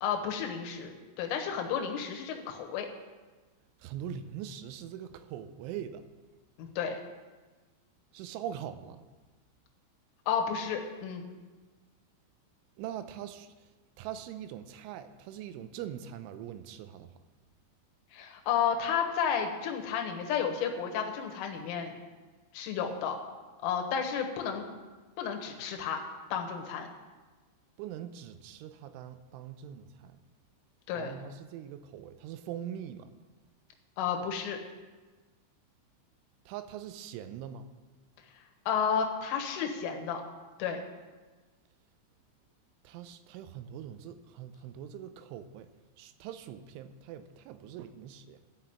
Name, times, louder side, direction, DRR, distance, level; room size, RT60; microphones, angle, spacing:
voice 1, 0.0-2.9 6.6-7.0 10.3-11.2 18.1-22.0 22.5-23.2 23.6-24.7 25.2-26.0 26.3-26.9 30.9-31.1 34.0-34.6 38.7-40.2 40.6-40.8, left 7 dB, 85° left, 4 dB, 3.8 m, -32 dB
voice 2, 3.8-6.0 8.1-9.0 12.8-13.5 14.0-17.1 27.8-30.2 31.0-33.1 36.5-37.7 42.8-45.7 46.0-48.4, right 9 dB, 90° right, 11 dB, 3.1 m, -42 dB
12.5 x 6.0 x 8.7 m, 1.3 s
omnidirectional pair, 5.5 m